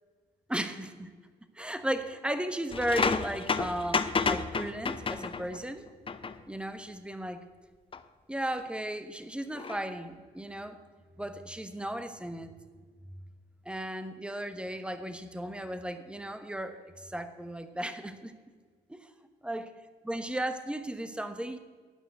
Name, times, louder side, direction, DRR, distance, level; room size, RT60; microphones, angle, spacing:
voice 1, 0.5-1.1 1.5-5.8 6.5-7.4 8.3-10.8 11.2-12.5 13.6-18.3 18.9-19.1 19.4-19.7 20.0-21.6, right 1 dB, 5° right, 9 dB, 1.1 m, -35 dB
sound 1, 2.7-5.6 6.1-6.4 7.9-8.0 9.5-9.8, left 5 dB, 25° left, 0.7 m, -30 dB
9.0 x 8.9 x 8.0 m, 1.5 s
figure-of-eight pair, 45°, 21 cm